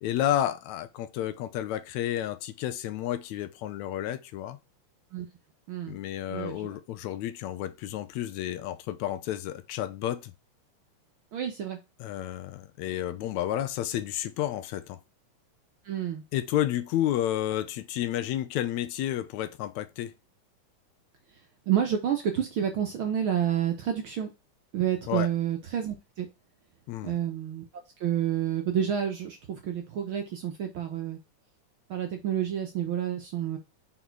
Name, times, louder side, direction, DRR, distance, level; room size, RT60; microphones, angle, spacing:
voice 1, 0.0-4.6 5.9-10.3 12.0-15.0 16.3-20.1 25.1-25.3 26.9-27.2, left 12 dB, 75° left, 1.9 m, -31 dB
voice 2, 6.3-6.8 11.3-11.8 15.8-16.2 21.7-24.3 24.7-26.3 27.0-27.6 28.0-31.2 31.9-33.6, right 9 dB, 70° right, 1.2 m, -29 dB
5.4 x 4.2 x 4.5 m
omnidirectional pair, 3.5 m